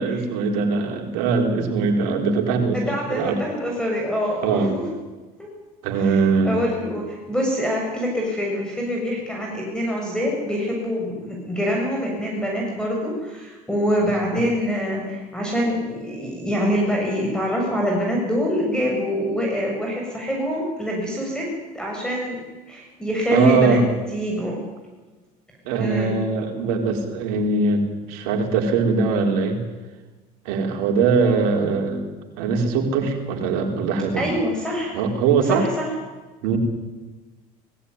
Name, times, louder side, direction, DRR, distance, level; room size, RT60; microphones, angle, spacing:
voice 1, 0.0-2.8 3.1-3.4 4.4-4.7 5.8-6.6 23.3-23.9 25.7-29.6 30.4-32.1 32.4-34.4 34.9-35.7 36.4-36.6, right 4 dB, 80° right, 3 dB, 4.2 m, -21 dB
voice 2, 2.7-4.9 5.4-5.5 5.9-21.5 21.7-23.8 24.1-24.6 25.8-26.2 34.2-34.9 35.5-35.9, equal, 5° left, -1 dB, 7.3 m, -25 dB
19.5 x 16.0 x 9.7 m, 1.2 s
supercardioid pair, 90°, 19 cm